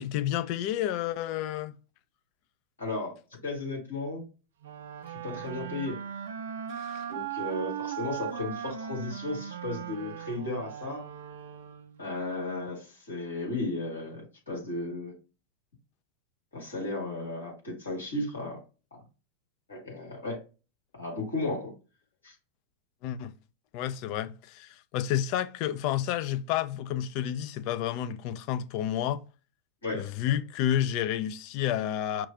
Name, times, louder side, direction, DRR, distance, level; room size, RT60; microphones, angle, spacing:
voice 1, 0.0-1.7 6.7-7.1 23.0-23.3 23.7-29.2 29.9-32.3, left 11 dB, 45° left, 0.4 m, -30 dB
voice 2, 2.8-4.2 5.1-6.0 7.1-11.1 12.0-15.1 16.5-18.6 19.7-20.4 20.9-21.7 22.2-22.4 29.8-30.1, left 2 dB, 70° left, 2.1 m, -34 dB
sound 1, 4.6-12.1, right 9 dB, 60° right, 0.4 m, -38 dB
5.9 x 2.4 x 2.7 m
figure-of-eight pair, 90°, 0 cm